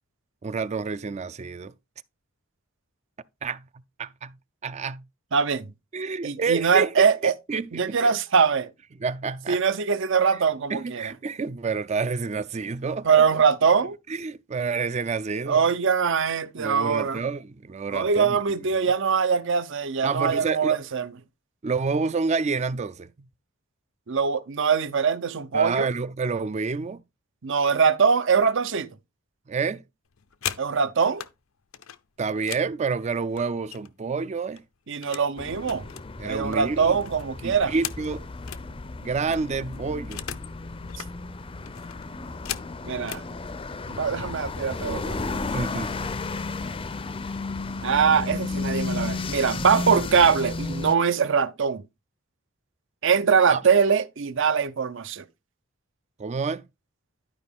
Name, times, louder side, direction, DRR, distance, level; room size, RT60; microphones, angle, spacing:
voice 1, 0.4-1.7 3.4-3.6 4.0-4.4 4.6-5.0 5.9-6.9 7.2-8.1 9.0-9.6 10.7-13.4 14.1-15.7 16.6-18.9 20.0-20.8 21.6-23.3 25.5-27.0 29.5-29.8 32.2-34.6 36.2-37.0 37.4-38.3 39.0-40.3 45.4-46.2 53.5-53.6 56.2-56.6, right 4 dB, 35° right, 0.4 m, -29 dB
voice 2, 5.3-5.7 6.2-7.3 7.7-8.7 9.5-11.1 13.0-14.0 15.5-17.2 17.9-21.1 24.1-25.9 27.4-28.9 30.6-31.2 34.9-35.8 36.2-37.7 42.8-43.2 43.9-45.4 47.8-51.8 53.0-55.2, right 6 dB, 65° right, 0.7 m, -22 dB
sound 1, 30.1-31.3 31.7-34.1 34.4-35.3 35.6-38.7 39.0-39.1 39.3-40.5 40.8-41.1 41.7-43.3 44.1-44.3 44.6-44.9 45.2-45.8, left 11 dB, 80° left, 0.7 m, -38 dB
sound 2, 35.4-51.0, left 3 dB, 25° left, 0.5 m, -33 dB
12.0 x 5.0 x 3.6 m
head